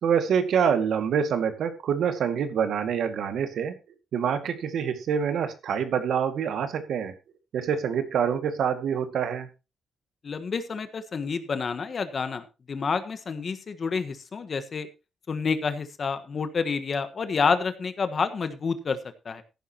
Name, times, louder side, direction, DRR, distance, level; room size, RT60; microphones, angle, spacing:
voice 1, 0.0-3.7 4.1-7.1 7.5-9.5, right 7 dB, 65° right, 9 dB, 2.0 m, -26 dB
voice 2, 10.2-14.9 15.3-19.0 19.2-19.4, left 5 dB, 40° left, 10 dB, 1.4 m, -29 dB
14.5 x 11.5 x 3.0 m, 0.28 s
cardioid pair, 130°, 0 cm